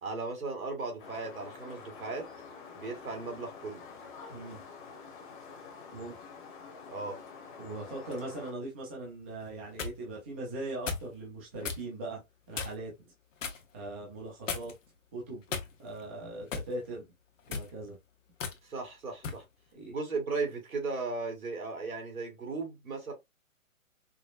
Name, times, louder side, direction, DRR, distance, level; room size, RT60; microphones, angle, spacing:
voice 1, 0.0-2.3 2.8-3.8 6.9-7.2 18.6-19.4 19.9-23.1, right 3 dB, 75° right, 2.0 m, -36 dB
sound 1, 1.0-8.5, left 5 dB, 35° left, 1.1 m, -48 dB
voice 2, 4.3-4.6 5.9-6.2 7.6-12.2 12.5-12.9 13.7-14.7 15.1-15.4 15.8-17.0 17.5-18.0 19.7-19.9, right 2 dB, 10° right, 0.4 m, -40 dB
sound 2, 9.4-10.0 10.9-11.1 11.6-11.8 12.5-12.9 13.4-13.6 14.5-14.9 15.5-16.0 16.5-16.7 17.4-17.7 18.4-18.6 19.2-19.4, left 5 dB, 60° left, 1.0 m, -36 dB
5.1 x 2.1 x 2.4 m
hypercardioid pair, 140°, 42 cm